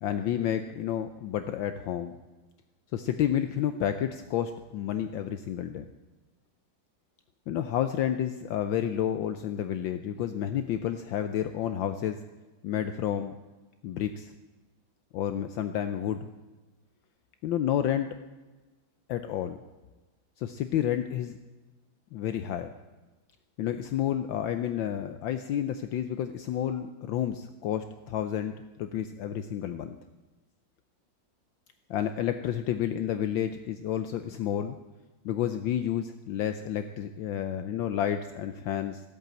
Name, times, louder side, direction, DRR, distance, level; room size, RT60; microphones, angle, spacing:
voice 1, 0.0-2.1 2.9-5.8 7.5-12.2 12.6-13.4 13.8-14.3 15.1-16.3 17.4-18.1 19.1-19.6 20.4-21.4 22.1-22.7 23.6-30.0 31.9-34.8 35.2-39.0, left 10 dB, 70° left, 9 dB, 1.4 m, -30 dB
15.0 x 8.2 x 8.9 m, 1.2 s
omnidirectional pair, 2.3 m